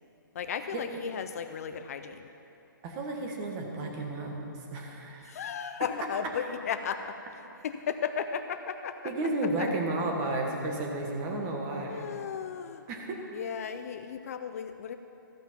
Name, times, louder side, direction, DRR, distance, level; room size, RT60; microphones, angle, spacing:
voice 1, 0.3-2.3 5.2-9.3 9.6-9.7 11.9-12.9 13.3-15.0, left 7 dB, 45° left, 9 dB, 0.5 m, -35 dB
voice 2, 2.8-5.3 9.0-12.0 12.9-13.2, right 2 dB, 25° right, 1 dB, 1.4 m, -32 dB
14.5 x 5.6 x 7.3 m, 2.8 s
hypercardioid pair, 160°, 12 cm